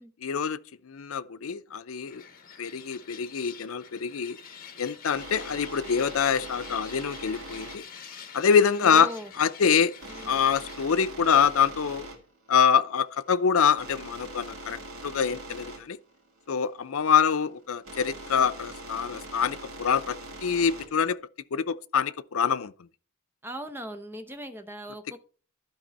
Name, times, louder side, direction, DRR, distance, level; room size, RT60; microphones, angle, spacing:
voice 1, 0.2-0.6 0.8-2.2 2.6-4.4 4.8-7.8 8.3-9.1 9.4-9.9 10.2-12.1 12.5-14.8 15.0-16.0 16.5-21.2 21.5-22.7, left 7 dB, 80° left, 0.6 m, -25 dB
sound 1, 2.1-10.9, left 7 dB, 45° left, 1.3 m, -47 dB
sound 2, 4.5-21.1, right 1 dB, 85° right, 2.1 m, -43 dB
voice 2, 8.8-9.3 10.0-10.3 23.4-25.2, equal, 10° right, 0.8 m, -39 dB
12.0 x 5.3 x 4.2 m
head